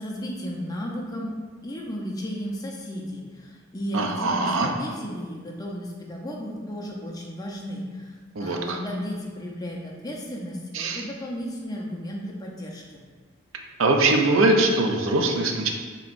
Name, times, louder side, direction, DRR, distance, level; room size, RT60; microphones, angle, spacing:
voice 1, 0.0-8.1 8.4-13.0, equal, 20° left, -2 dB, 0.6 m, -34 dB
voice 2, 3.9-4.7 8.4-8.8 10.7-11.1 13.8-15.7, right 2 dB, 75° right, 3 dB, 0.5 m, -22 dB
6.8 x 3.0 x 2.5 m, 1.5 s
head